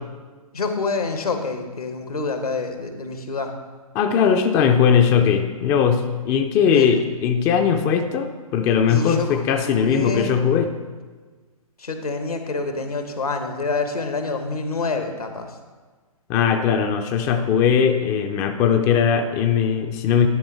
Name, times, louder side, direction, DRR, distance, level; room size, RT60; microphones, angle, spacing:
voice 1, 0.5-3.5 6.7-7.0 8.9-10.3 11.8-15.6, left 3 dB, 80° left, 6 dB, 1.2 m, -27 dB
voice 2, 3.9-10.7 16.3-20.3, left 7 dB, 15° left, 6 dB, 0.3 m, -19 dB
11.0 x 5.2 x 4.6 m, 1.4 s
figure-of-eight pair, 125°, 19 cm